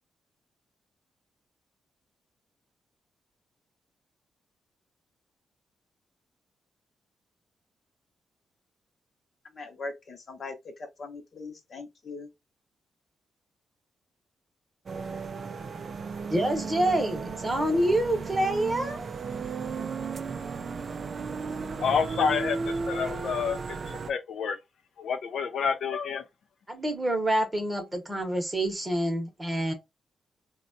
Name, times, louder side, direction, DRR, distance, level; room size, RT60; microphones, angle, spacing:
voice 1, 9.5-10.7 11.0-12.3, left 3 dB, 40° left, 0.7 m, -40 dB
sound 1, 14.9-24.1, right 4 dB, 35° right, 0.3 m, -35 dB
voice 2, 16.3-19.1 26.7-29.7, right 1 dB, 15° right, 0.9 m, -27 dB
voice 3, 21.8-23.6 24.1-24.6 25.0-26.2, left 6 dB, 60° left, 0.4 m, -28 dB
3.9 x 2.2 x 2.5 m
wide cardioid pair, 165°, 0 cm